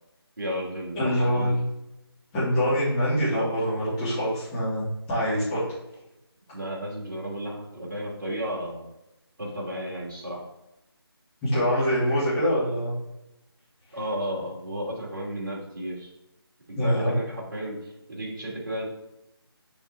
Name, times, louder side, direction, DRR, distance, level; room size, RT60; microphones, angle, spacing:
voice 1, 0.4-1.6 6.5-8.9 9.4-10.5 13.9-16.1 16.7-18.9, equal, 50° right, -3 dB, 2.8 m, -33 dB
voice 2, 0.9-1.6 2.3-5.6 11.4-12.9 16.8-17.1, equal, 10° left, -10 dB, 2.6 m, -24 dB
7.0 x 6.1 x 3.5 m, 0.91 s
figure-of-eight pair, 160°, 13 cm